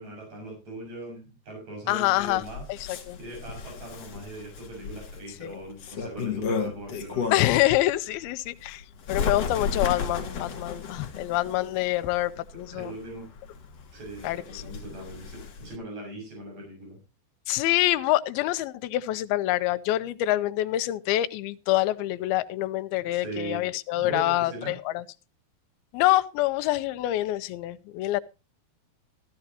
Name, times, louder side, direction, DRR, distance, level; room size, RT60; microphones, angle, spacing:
voice 1, 0.0-2.6 3.2-7.3 12.7-13.3 13.9-17.0 23.0-23.6 24.0-24.7, right 2 dB, 40° right, 7.8 m, -40 dB
voice 2, 1.9-3.2 5.4-5.6 7.3-13.0 14.2-14.6 17.5-25.0 25.9-28.2, left 16 dB, 80° left, 2.4 m, -26 dB
Bird, 2.2-7.6 8.1-15.8, left 5 dB, 50° left, 2.3 m, -34 dB
14.5 x 13.5 x 2.9 m
omnidirectional pair, 4.8 m